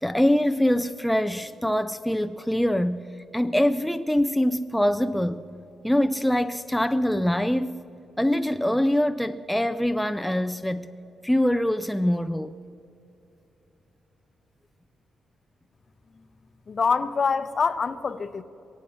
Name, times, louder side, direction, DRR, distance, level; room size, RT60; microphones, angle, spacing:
voice 1, 0.0-5.4 5.8-7.8 8.2-10.9 11.2-12.5, left 1 dB, 5° left, 0.4 m, -24 dB
voice 2, 16.7-18.4, left 5 dB, 40° left, 0.7 m, -25 dB
22.0 x 8.4 x 7.1 m
cardioid pair, 110°, 0 cm